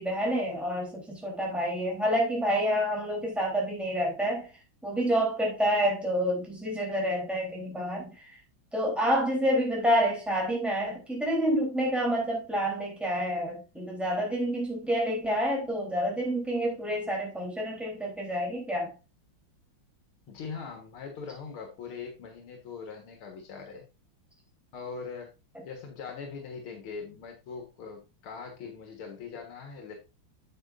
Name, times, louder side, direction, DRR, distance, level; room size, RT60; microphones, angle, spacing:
voice 1, 0.0-4.5 4.8-8.4 8.7-18.9, equal, ahead, 3.3 m, -28 dB
voice 2, 20.3-23.9 24.7-25.3 25.7-29.9, left 5 dB, 90° left, 2.3 m, -41 dB
8.8 x 7.5 x 2.5 m
omnidirectional pair, 2.3 m